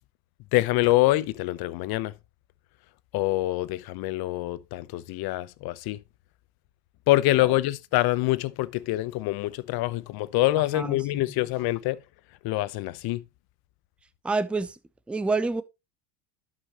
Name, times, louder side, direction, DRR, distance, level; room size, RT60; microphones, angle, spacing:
voice 1, 0.5-2.1 3.1-6.0 7.1-12.0 12.4-13.2, left 17 dB, 55° left, 0.8 m, -25 dB
voice 2, 14.2-14.8 15.1-15.6, right 3 dB, 5° right, 0.4 m, -27 dB
11.5 x 5.8 x 2.9 m
supercardioid pair, 110°, 45 cm